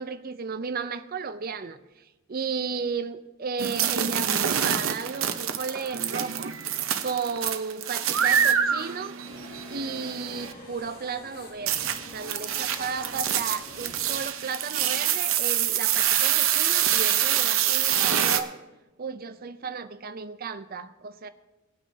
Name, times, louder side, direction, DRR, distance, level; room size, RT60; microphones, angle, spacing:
voice 1, 0.0-9.2 9.7-18.6 19.0-21.3, right 5 dB, 45° right, 11 dB, 0.6 m, -34 dB
sound 1, 3.6-10.5 11.7-18.4, right 9 dB, 75° right, 0.8 m, -26 dB
sound 2, 9.2-14.2, left 2 dB, 45° left, 2.0 m, -46 dB
20.0 x 9.1 x 2.8 m, 1.1 s
head